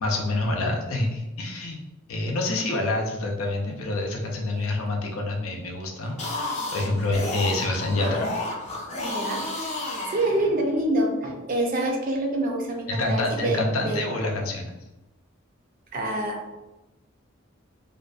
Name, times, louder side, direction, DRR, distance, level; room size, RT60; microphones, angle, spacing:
voice 1, 0.0-1.8 2.1-8.3 12.9-14.8, left 2 dB, 90° left, 1 dB, 0.5 m, -27 dB
sound 1, 6.0-10.8, left 2 dB, 35° left, 0.5 m, -31 dB
voice 2, 9.0-9.7 10.1-14.0 15.9-16.4, right 1 dB, 40° right, 1 dB, 0.4 m, -26 dB
2.5 x 2.3 x 2.3 m, 1.0 s
head